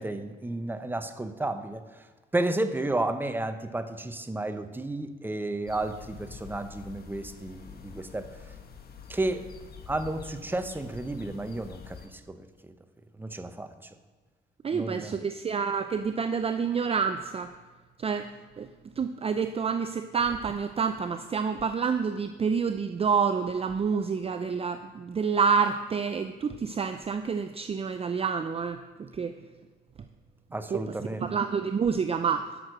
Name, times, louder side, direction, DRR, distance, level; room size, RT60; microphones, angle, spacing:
voice 1, 0.0-1.8 2.3-8.3 9.1-9.5 9.9-12.4 13.2-13.7 14.7-15.2 30.5-31.3, right 2 dB, 10° right, 9 dB, 0.8 m, -32 dB
sound 1, 5.7-12.1, left 6 dB, 50° left, 1.2 m, -46 dB
voice 2, 14.6-17.5 18.0-18.7 19.0-28.8 29.1-29.3 30.7-30.9 31.2-32.5, right 6 dB, 30° right, 9 dB, 0.5 m, -28 dB
11.0 x 6.5 x 6.2 m, 1.4 s
cardioid pair, 90°, 20 cm